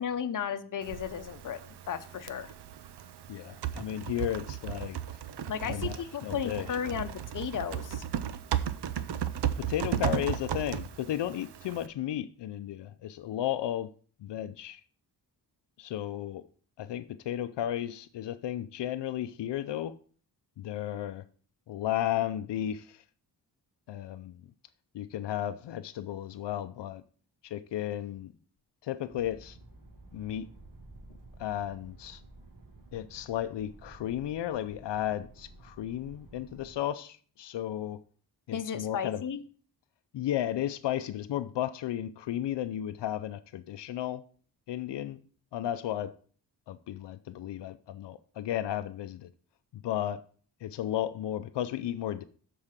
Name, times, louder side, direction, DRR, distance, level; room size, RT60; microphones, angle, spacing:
voice 1, 0.0-2.5 5.5-8.0 38.5-39.4, left 8 dB, 50° left, 0.8 m, -34 dB
Typing, 0.8-11.9, right 10 dB, 70° right, 0.7 m, -35 dB
voice 2, 3.3-5.0 5.6-5.9 6.2-7.1 9.6-13.9 14.2-14.8 15.8-16.5 16.8-20.0 20.6-21.2 21.7-23.0 23.9-24.4 24.9-27.0 27.4-28.3 28.8-29.6 30.1-30.5 31.4-32.2 32.9-38.0 38.5-39.2 40.1-44.2 44.7-45.2 45.5-46.1 46.7-49.3 49.7-50.2 50.6-52.2, left 12 dB, 85° left, 0.6 m, -34 dB
sound 1, 29.1-36.8, right 2 dB, 50° right, 2.2 m, -52 dB
7.3 x 4.7 x 6.5 m
wide cardioid pair, 115°, 41 cm